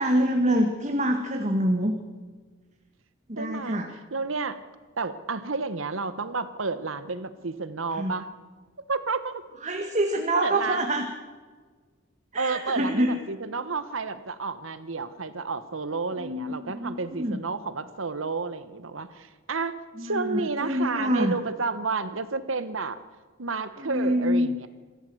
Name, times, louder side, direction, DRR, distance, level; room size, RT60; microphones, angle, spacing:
voice 1, 0.0-1.9 3.3-3.9 7.9-8.2 9.6-11.1 12.3-13.2 16.2-17.4 20.0-21.4 23.8-24.5, equal, 35° right, 4 dB, 1.9 m, -26 dB
voice 2, 3.4-3.8 4.1-4.6 5.0-8.3 8.9-9.4 10.3-10.8 12.4-19.7 20.0-23.0 23.4-24.7, right 4 dB, 75° right, 12 dB, 1.2 m, -31 dB
26.5 x 13.5 x 7.9 m, 1.4 s
head